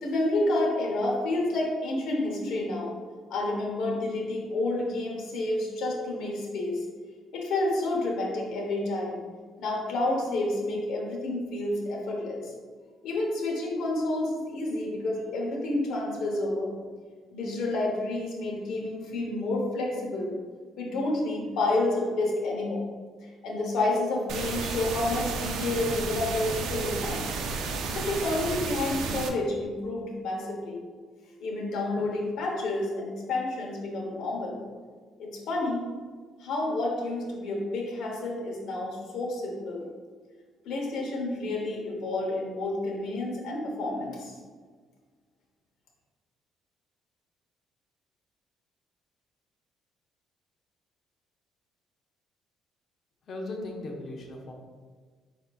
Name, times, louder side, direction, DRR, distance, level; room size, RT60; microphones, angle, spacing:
voice 1, 0.0-2.9 3.3-6.8 7.3-9.2 9.6-12.5 13.0-16.7 17.3-20.4 20.8-22.8 23.4-27.2 27.9-30.8 31.4-34.6 35.2-35.9 36.4-39.8 40.6-44.3, left 2 dB, 70° left, -1 dB, 1.1 m, -29 dB
sound 1, 24.3-29.3, right 4 dB, 75° right, 0.5 m, -32 dB
voice 2, 53.3-54.5, left 2 dB, 45° left, 0 dB, 0.8 m, -37 dB
5.1 x 4.2 x 2.4 m, 1.6 s
cardioid pair, 135°, 0 cm